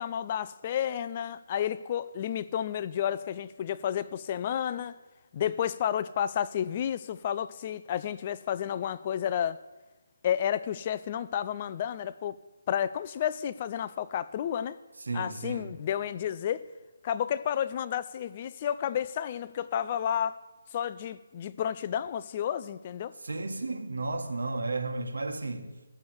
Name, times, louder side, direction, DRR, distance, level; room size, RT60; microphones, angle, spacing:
voice 1, 0.0-5.0 5.3-9.6 10.2-12.4 12.7-14.8 15.1-16.6 17.0-20.4 20.7-23.1, left 9 dB, 25° left, 0.3 m, -31 dB
voice 2, 15.0-15.8 23.2-25.7, right 3 dB, 80° right, 1.7 m, -33 dB
14.5 x 6.9 x 8.0 m
hypercardioid pair, 170°, 0 cm